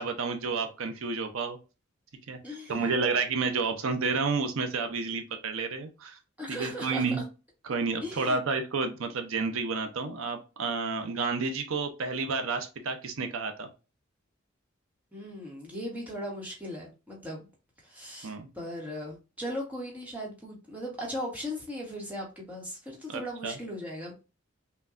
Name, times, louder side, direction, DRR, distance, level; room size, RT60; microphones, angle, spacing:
voice 1, 0.0-1.6 2.3-2.4 2.7-6.2 6.5-7.2 7.6-13.7 18.2-18.5 23.1-23.6, right 4 dB, 85° right, 6 dB, 0.6 m, -30 dB
voice 2, 2.4-2.9 6.4-7.0 8.0-8.4 15.1-17.5 17.8-24.1, equal, 5° right, -3 dB, 1.1 m, -38 dB
5.6 x 2.2 x 2.5 m, 0.30 s
head